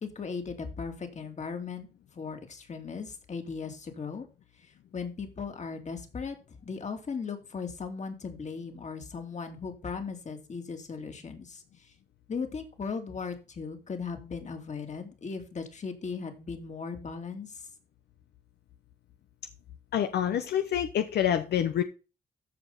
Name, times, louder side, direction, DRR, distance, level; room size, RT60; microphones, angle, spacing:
voice 1, 0.0-1.9 2.1-4.3 4.9-6.4 6.6-11.6 12.3-17.6, left 5 dB, 45° left, 6 dB, 2.6 m, -37 dB
voice 2, 19.9-21.8, left 9 dB, 85° left, 9 dB, 0.9 m, -27 dB
14.0 x 5.1 x 4.0 m, 0.31 s
cardioid pair, 90°, 17 cm